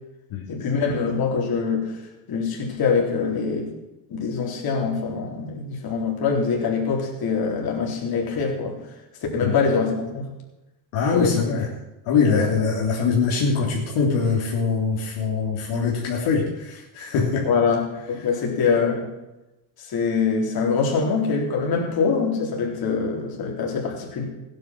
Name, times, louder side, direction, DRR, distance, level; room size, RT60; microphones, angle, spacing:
voice 1, 0.5-1.9 2.3-3.7 4.1-8.8 9.3-10.3 11.1-11.3 12.3-12.5 17.5-19.1 19.8-24.2, left 5 dB, 45° left, -1 dB, 4.1 m, -24 dB
voice 2, 10.9-11.7 12.0-17.5, left 5 dB, 70° left, -2 dB, 3.2 m, -23 dB
16.0 x 9.8 x 6.1 m, 0.98 s
cardioid pair, 140°, 49 cm